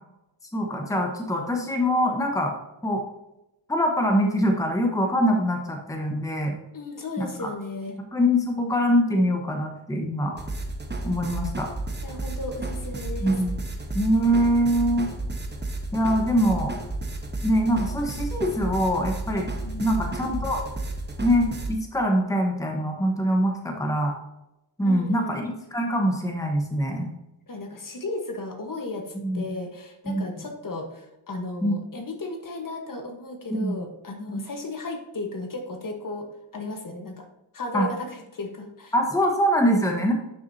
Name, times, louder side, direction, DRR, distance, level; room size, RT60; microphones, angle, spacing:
voice 1, 0.5-2.5 2.8-3.0 3.7-6.6 7.2-7.5 8.1-10.4 11.0-11.7 13.2-13.5 13.9-15.1 15.9-16.8 17.4-19.5 19.8-20.6 21.2-24.1 24.8-27.1 29.2-29.5 30.1-30.3 31.6-31.8 33.5-33.7 34.3-34.4 37.7-37.9 38.9-40.1, equal, 5° left, 2 dB, 1.2 m, -23 dB
voice 2, 6.7-8.0 12.0-13.3 19.6-20.1 24.8-25.4 27.5-37.3 37.5-38.9, left 2 dB, 45° left, 4 dB, 1.3 m, -35 dB
sound 1, 10.4-21.7, right 2 dB, 20° right, 1.1 m, -32 dB
10.5 x 6.0 x 2.8 m, 0.93 s
cardioid pair, 95°, 47 cm